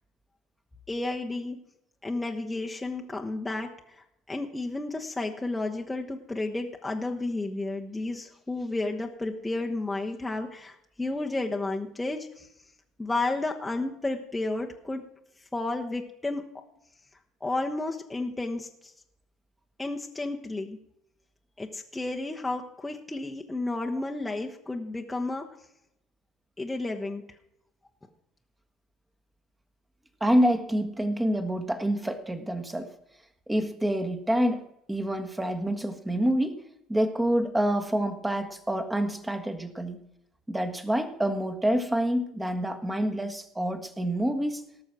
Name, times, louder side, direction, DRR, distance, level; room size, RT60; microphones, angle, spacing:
voice 1, 0.9-1.6 2.0-12.5 13.0-15.0 15.5-16.4 17.4-18.9 19.8-20.8 21.6-25.4 26.6-27.2, left 2 dB, 10° left, 1 dB, 1.1 m, -32 dB
voice 2, 30.2-32.9 33.5-34.6 34.9-36.6 36.9-40.0 40.5-44.6, equal, 10° right, 7 dB, 1.6 m, -27 dB
18.5 x 6.3 x 5.9 m, 0.80 s
figure-of-eight pair, 60°, 0 cm